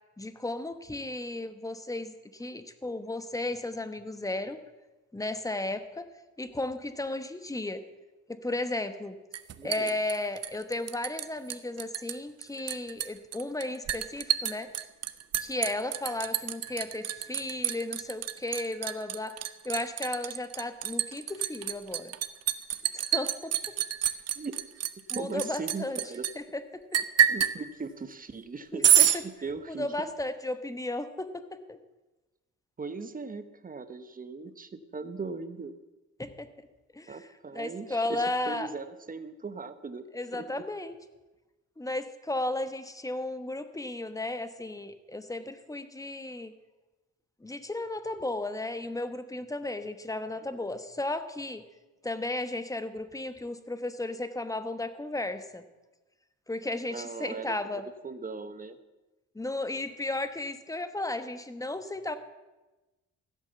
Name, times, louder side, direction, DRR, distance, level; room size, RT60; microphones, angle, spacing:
voice 1, 0.2-4.6 5.1-6.1 6.4-7.8 8.3-9.2 9.6-14.7 15.4-19.4 19.6-22.1 22.9-23.5 25.1-26.0 26.5-27.0 28.7-29.2 29.7-31.8 36.2-36.5 36.9-37.2 37.5-38.7 40.1-41.0 41.8-46.5 47.4-51.6 52.0-55.6 56.5-57.9 59.3-62.2, left 2 dB, 10° left, 10 dB, 1.1 m, -34 dB
Liquid, 9.3-11.2 11.5-12.1 12.4-26.3 26.9-27.6 28.8-29.2, right 10 dB, 55° right, 0.9 m, -27 dB
voice 2, 9.6-9.9 24.3-24.6 25.1-26.3 27.3-29.9 32.8-35.7 37.1-40.1 40.3-40.6 50.3-50.7 56.9-58.8, right 4 dB, 30° right, 11 dB, 1.0 m, -39 dB
15.0 x 8.4 x 6.9 m, 1.1 s
cardioid pair, 90°, 30 cm